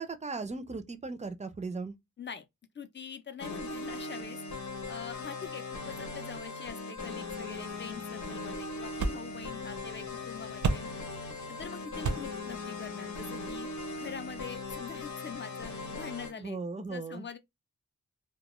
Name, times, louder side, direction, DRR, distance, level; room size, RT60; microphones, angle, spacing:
voice 1, 0.0-1.9 16.4-17.3, right 4 dB, 25° right, 0.4 m, -37 dB
voice 2, 2.7-4.4 4.9-10.9 11.5-13.7 14.0-17.4, left 6 dB, 40° left, 0.4 m, -44 dB
sound 1, 3.4-16.3, left 3 dB, 75° left, 0.8 m, -39 dB
sound 2, 7.3-14.4, right 4 dB, 85° right, 0.5 m, -38 dB
2.2 x 2.2 x 2.9 m
wide cardioid pair, 95°, 29 cm